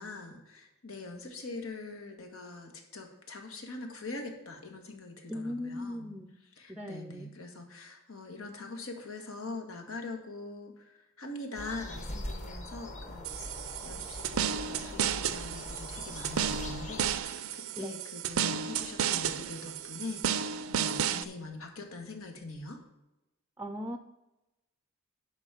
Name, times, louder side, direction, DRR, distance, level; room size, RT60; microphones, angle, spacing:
voice 1, 0.0-6.1 6.6-13.5 13.8-22.8, left 3 dB, 85° left, 4 dB, 1.9 m, -43 dB
voice 2, 5.3-6.4 6.7-7.3 17.8-18.0 23.6-24.0, left 1 dB, 10° right, 7 dB, 0.5 m, -38 dB
sound 1, 11.5-17.2, left 1 dB, 35° left, 1.2 m, -42 dB
sound 2, 13.2-21.2, right 8 dB, 85° right, 0.5 m, -33 dB
10.5 x 4.2 x 7.5 m, 0.97 s
head